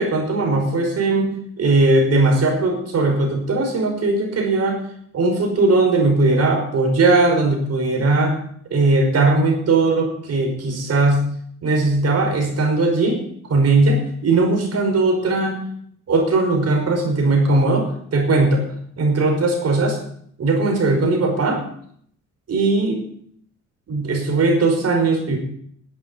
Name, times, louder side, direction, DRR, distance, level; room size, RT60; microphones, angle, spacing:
voice 1, 0.0-4.8 5.1-8.4 8.7-11.2 11.6-13.2 13.5-15.6 16.1-18.6 19.0-20.0 20.4-21.6 22.5-23.0 23.9-25.4, right 2 dB, 55° right, 3 dB, 5.5 m, -18 dB
11.5 x 8.5 x 9.7 m, 0.65 s
cardioid pair, 90°, 30 cm